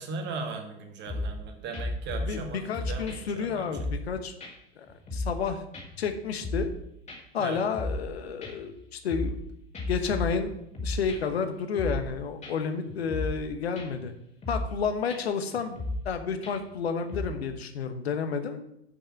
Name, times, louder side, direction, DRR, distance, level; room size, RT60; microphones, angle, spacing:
voice 1, 0.0-3.8 7.4-7.6, right 4 dB, 35° right, 4 dB, 1.8 m, -38 dB
sound 1, 1.1-1.4 1.7-2.4 2.7-4.1 4.4-4.5 4.9-5.5 5.7-6.8 7.1-7.2 7.5-8.1 8.4-9.4 9.7-11.4 11.7-12.1 12.4-12.5 12.9-13.5 13.8-14.1 14.4-14.8 15.1-15.2 15.5-16.1 16.4-16.8 17.1-17.2, left 1 dB, 20° left, 2.1 m, -34 dB
voice 2, 2.1-4.3 4.8-5.6 6.0-6.7 7.3-9.4 9.9-10.5 10.8-14.1 14.5-18.6, left 6 dB, 75° left, 8 dB, 1.1 m, -31 dB
6.9 x 5.6 x 7.3 m, 0.78 s
figure-of-eight pair, 95°, 32 cm